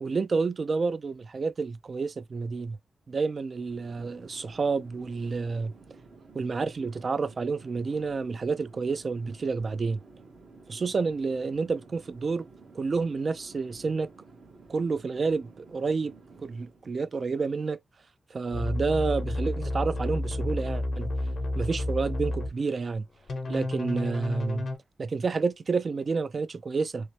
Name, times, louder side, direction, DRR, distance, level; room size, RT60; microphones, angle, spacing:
voice 1, 0.0-2.8 3.1-5.7 6.3-10.0 10.7-12.5 12.7-14.1 14.7-16.1 16.4-17.8 18.3-21.1 21.6-23.0 23.5-24.7 25.0-27.1, right 4 dB, 55° right, 0.3 m, -29 dB
Chatter / Fixed-wing aircraft airplane, 3.5-16.9, right 3 dB, 70° right, 1.0 m, -52 dB
sound 1, 18.5-22.5 23.3-24.8, left 1 dB, 75° left, 0.7 m, -31 dB
2.9 x 2.0 x 3.0 m
cardioid pair, 70°, 0 cm